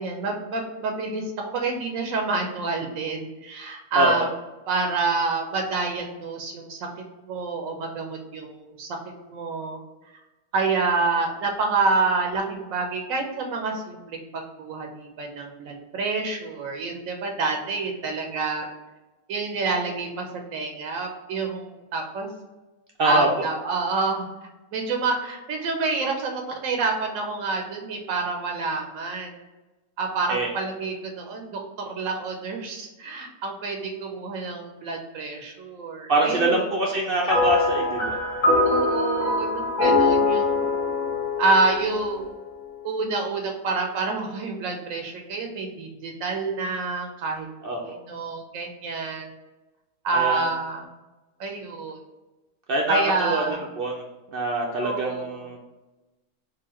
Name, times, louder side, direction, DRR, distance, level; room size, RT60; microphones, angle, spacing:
voice 1, 0.0-4.3 4.7-6.8 7.2-9.0 9.3-9.8 10.5-18.7 19.3-20.3 20.5-22.3 23.0-24.3 24.7-29.3 30.0-36.6 38.6-40.7 41.4-42.3 42.8-47.5 47.8-49.3 50.0-50.8 51.4-52.0 52.9-53.6 54.8-55.4, right 3 dB, 90° right, 2 dB, 1.1 m, -28 dB
voice 2, 36.1-38.2 47.6-48.0 50.1-50.4 52.7-54.0 54.3-55.6, right 2 dB, 60° right, -1 dB, 0.6 m, -24 dB
sound 1, 37.3-42.8, left 3 dB, 45° left, 0.7 m, -23 dB
3.9 x 2.6 x 2.9 m, 1.1 s
omnidirectional pair, 1.3 m